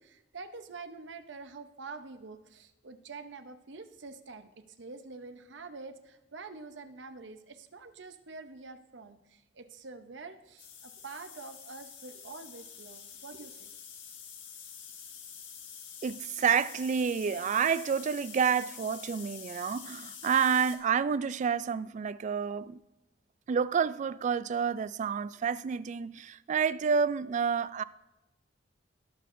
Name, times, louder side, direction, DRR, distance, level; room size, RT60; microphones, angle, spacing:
voice 1, 0.0-13.7, right 4 dB, 70° right, 0.8 m, -46 dB
sound 1, 10.6-20.8, left 7 dB, 85° left, 1.8 m, -47 dB
voice 2, 16.0-22.8 23.5-27.8, right 6 dB, 40° right, 0.3 m, -29 dB
18.5 x 6.7 x 2.6 m
head